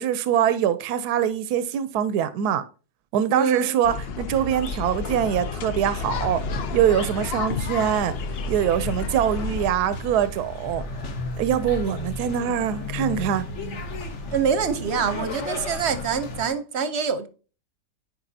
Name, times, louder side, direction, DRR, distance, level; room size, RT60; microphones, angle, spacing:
voice 1, 0.0-2.6 3.1-6.4 6.7-8.1 8.5-10.8 11.4-13.5, right 9 dB, 85° right, 1.1 m, -23 dB
voice 2, 3.3-3.8 14.3-17.3, right 6 dB, 55° right, 0.8 m, -25 dB
sound 1, 3.8-9.7, left 5 dB, 75° left, 0.5 m, -31 dB
sound 2, 6.1-16.5, left 1 dB, 50° left, 1.2 m, -34 dB
9.8 x 5.0 x 2.7 m
omnidirectional pair, 1.7 m